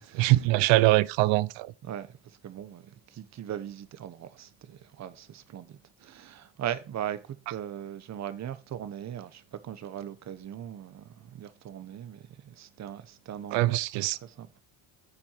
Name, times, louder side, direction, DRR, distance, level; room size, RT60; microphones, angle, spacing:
voice 1, 0.2-1.7 13.5-14.2, right 18 dB, 90° right, 0.7 m, -23 dB
voice 2, 1.9-2.2 2.4-13.8 14.2-14.6, right 10 dB, 40° right, 1.1 m, -39 dB
9.9 x 7.0 x 4.5 m
cardioid pair, 145°, 44 cm